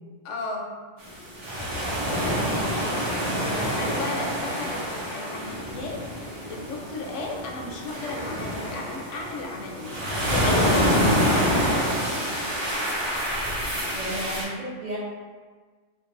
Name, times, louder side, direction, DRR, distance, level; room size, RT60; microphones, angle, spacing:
voice 1, 0.2-0.7 3.4-10.9, left 2 dB, 85° left, 0 dB, 0.9 m, -35 dB
sound 1, 1.0-14.4, equal, 60° right, 1.2 m, -27 dB
voice 2, 2.4-3.9 13.9-15.0, right 1 dB, 45° right, -7 dB, 0.8 m, -35 dB
3.5 x 2.6 x 3.0 m, 1.5 s
omnidirectional pair, 1.2 m